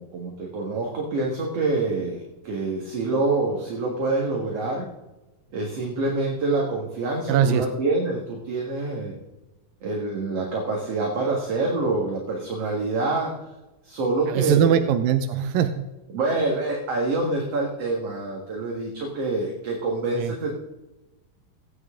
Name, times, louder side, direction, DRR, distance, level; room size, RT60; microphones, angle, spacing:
voice 1, 0.0-4.9 5.5-9.1 9.8-13.3 13.8-14.8 16.1-20.5, right 2 dB, 50° right, -1 dB, 2.4 m, -26 dB
voice 2, 7.3-7.6 14.3-15.8 20.2-20.3, right 9 dB, 80° right, 8 dB, 2.3 m, -21 dB
18.5 x 9.3 x 3.7 m, 1.0 s
omnidirectional pair, 4.0 m